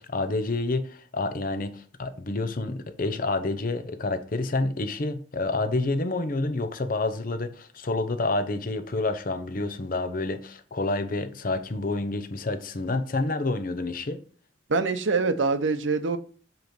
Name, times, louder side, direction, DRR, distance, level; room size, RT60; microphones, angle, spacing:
voice 1, 0.0-14.2, left 2 dB, 45° left, 0.6 m, -28 dB
voice 2, 14.7-16.2, right 4 dB, 75° right, 0.7 m, -24 dB
7.9 x 3.1 x 5.1 m
head